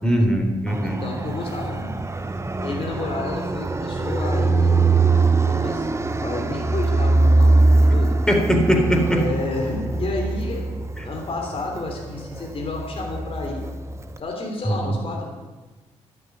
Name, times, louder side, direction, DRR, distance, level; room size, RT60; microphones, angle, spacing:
voice 1, 0.0-1.0 8.3-9.2 14.6-14.9, equal, 5° left, 3 dB, 3.7 m, -20 dB
Fixed-wing aircraft airplane, 0.7-14.2, right 3 dB, 25° right, 0.9 m, -22 dB
voice 2, 0.8-1.9 2.6-5.9 6.2-8.1 9.1-13.6 14.2-15.3, left 2 dB, 50° left, 0 dB, 3.5 m, -31 dB
12.0 x 8.2 x 9.4 m, 1.3 s
supercardioid pair, 60°, 12 cm